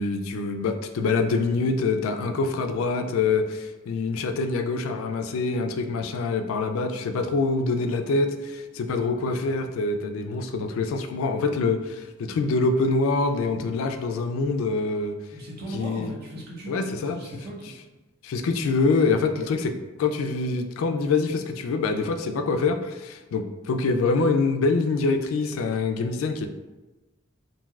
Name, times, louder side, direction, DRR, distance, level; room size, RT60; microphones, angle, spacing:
voice 1, 0.0-15.2 15.7-16.1 16.7-17.2 18.2-26.5, left 3 dB, 80° left, 7 dB, 0.3 m, -25 dB
voice 2, 15.3-17.7, right 1 dB, 50° right, -4 dB, 0.8 m, -38 dB
3.1 x 2.6 x 2.3 m, 1.1 s
head